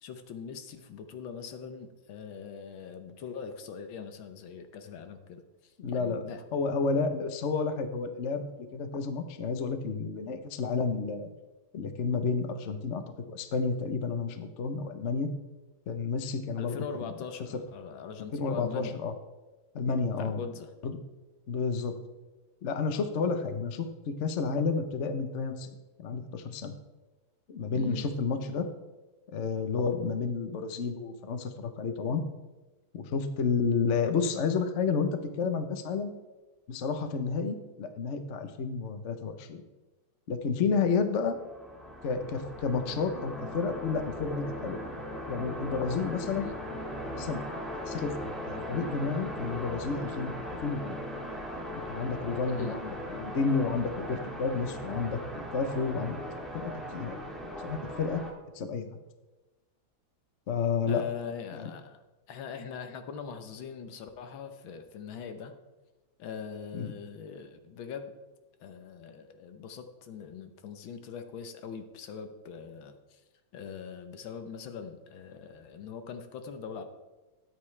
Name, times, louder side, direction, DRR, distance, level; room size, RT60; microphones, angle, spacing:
voice 1, 0.0-6.4 16.6-18.9 20.2-20.7 27.7-28.1 46.3-46.6 52.5-52.8 60.9-62.0 62.3-65.5 66.2-68.1 68.6-73.2 73.5-76.8, left 6 dB, 75° left, 8 dB, 1.7 m, -42 dB
voice 2, 5.8-6.2 6.5-11.3 11.7-13.0 13.3-15.3 15.9-17.1 18.3-19.1 19.7-20.4 20.8-20.9 21.5-21.9 22.6-26.7 27.5-28.7 29.3-32.2 32.9-35.1 35.4-36.1 36.7-39.6 40.3-41.4 42.0-44.8 45.3-46.5 47.2-47.4 47.7-50.3 50.6-51.0 51.7-56.1 56.5-57.2 57.6-58.2 58.5-59.0 60.5-61.0 61.5-61.7 66.7-66.9, left 5 dB, 50° left, 8 dB, 0.9 m, -31 dB
sound 1, 41.1-58.3, equal, ahead, 1.6 m, -39 dB
13.0 x 9.8 x 3.3 m, 1.1 s
omnidirectional pair, 2.2 m